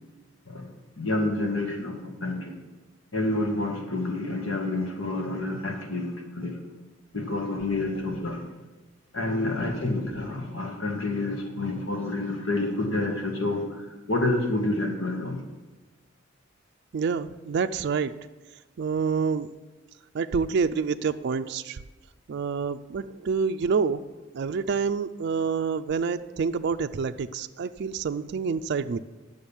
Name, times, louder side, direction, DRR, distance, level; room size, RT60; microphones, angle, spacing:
voice 1, 0.5-2.6 3.1-6.6 7.1-8.5 9.1-15.4, left 2 dB, 80° left, 2 dB, 1.9 m, -29 dB
voice 2, 16.9-18.1 18.8-19.5 20.1-21.8 22.3-24.0 24.3-29.0, right 5 dB, 60° right, 8 dB, 0.4 m, -27 dB
10.5 x 6.4 x 7.1 m, 1.2 s
head